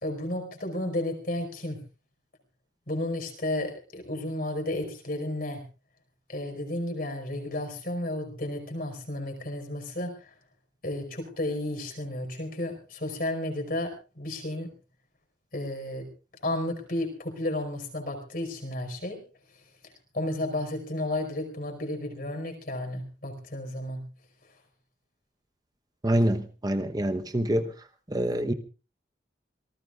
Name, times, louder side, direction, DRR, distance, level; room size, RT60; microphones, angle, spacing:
voice 1, 0.0-1.8 2.9-5.6 6.3-10.3 10.8-14.7 15.5-16.1 16.4-19.2 20.1-24.0, left 1 dB, 50° left, 4 dB, 5.1 m, -32 dB
voice 2, 26.0-27.7 28.1-28.5, right 1 dB, 20° right, 7 dB, 1.0 m, -26 dB
26.5 x 19.0 x 2.5 m, 0.33 s
head